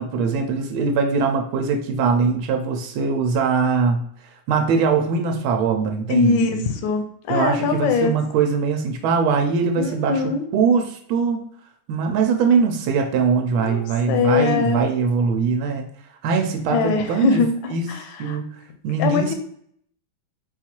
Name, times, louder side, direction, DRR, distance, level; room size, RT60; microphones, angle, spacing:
voice 1, 0.0-4.0 4.5-6.6 7.3-10.2 10.5-11.4 11.9-15.8 16.2-17.4 17.7-17.9 18.2-18.4 18.8-19.3, right 5 dB, 85° right, 3 dB, 1.4 m, -21 dB
voice 2, 6.1-8.1 9.8-10.5 13.6-14.8 16.7-18.4 19.0-19.3, left 5 dB, 75° left, 5 dB, 1.3 m, -22 dB
4.3 x 2.4 x 4.3 m, 0.65 s
omnidirectional pair, 2.3 m